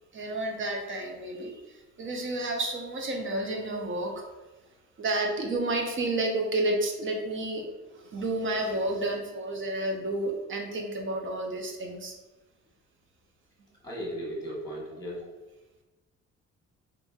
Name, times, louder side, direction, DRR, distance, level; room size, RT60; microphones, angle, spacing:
voice 1, 0.1-4.3 5.0-12.2, right 2 dB, 40° right, 2 dB, 0.6 m, -31 dB
voice 2, 13.8-15.2, equal, 10° left, -4 dB, 1.1 m, -36 dB
2.9 x 2.6 x 2.3 m, 1.1 s
cardioid pair, 90°, 30 cm